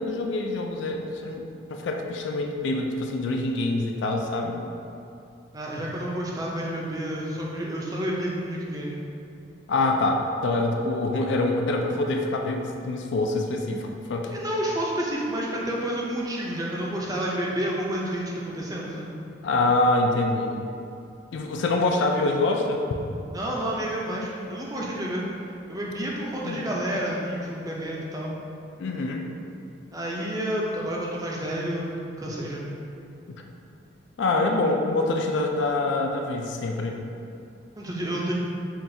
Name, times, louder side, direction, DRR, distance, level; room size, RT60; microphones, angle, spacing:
voice 1, 0.0-4.7 9.7-14.3 19.4-20.6 21.3-22.8 26.4-26.8 28.8-29.3 33.3-33.4 34.2-37.0, left 2 dB, 65° left, 2 dB, 0.3 m, -25 dB
voice 2, 5.5-9.0 14.3-19.1 23.3-25.2 25.7-28.3 29.9-31.9 32.2-32.6 37.8-38.3, right 1 dB, 20° right, -4 dB, 0.4 m, -30 dB
5.7 x 2.3 x 2.6 m, 2.6 s
head